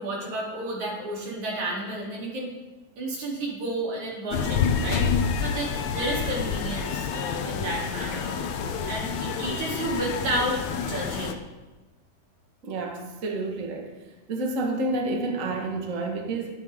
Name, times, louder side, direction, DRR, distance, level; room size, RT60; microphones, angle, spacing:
voice 1, 0.0-2.5 3.0-5.1 5.4-8.4 8.9-11.3, right 1 dB, 50° right, -4 dB, 4.3 m, -31 dB
sound 1, 4.3-11.3, left 6 dB, 85° left, 1.6 m, -28 dB
voice 2, 12.6-13.9 14.3-16.5, right 2 dB, 85° right, 1 dB, 0.7 m, -29 dB
20.0 x 9.8 x 3.6 m, 1.2 s
omnidirectional pair, 4.4 m